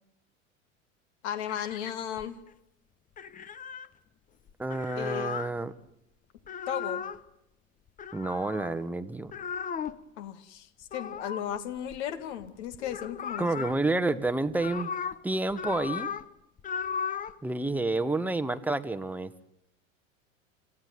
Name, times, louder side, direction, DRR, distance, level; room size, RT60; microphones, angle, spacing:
voice 1, 1.2-2.4 4.9-5.4 6.7-7.1 10.2-13.7, left 9 dB, 60° left, 11 dB, 2.2 m, -35 dB
sound 1, 1.5-2.5 3.2-3.9 4.5-5.5 6.4-7.2 8.0-8.8 9.3-10.0 10.9-12.5 12.7-13.7 14.3-15.2 15.5-16.3 16.6-17.4, left 7 dB, 20° left, 0.9 m, -36 dB
voice 2, 4.6-5.7 8.1-9.3 13.4-14.9 15.2-16.1 17.4-19.3, right 2 dB, 5° right, 10 dB, 1.2 m, -29 dB
27.0 x 16.0 x 9.5 m, 0.83 s
figure-of-eight pair, 80°, 40 cm